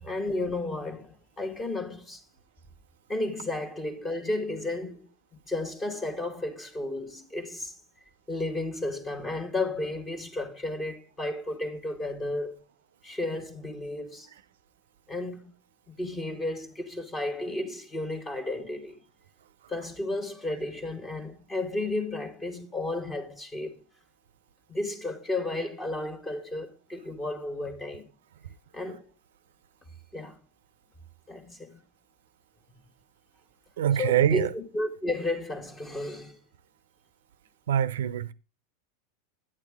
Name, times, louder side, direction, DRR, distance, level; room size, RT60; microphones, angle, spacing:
voice 1, 0.0-2.2 3.1-5.1 5.5-7.7 8.3-12.6 13.0-14.3 15.1-15.5 15.9-18.9 19.7-23.8 24.7-28.0 28.7-29.0 30.1-30.4 31.3-31.8 34.0-36.4, left 2 dB, 20° left, 1.2 m, -33 dB
voice 2, 33.8-34.5 37.7-38.3, right 10 dB, 80° right, 0.5 m, -24 dB
8.8 x 8.7 x 3.5 m
hypercardioid pair, 110°, 0 cm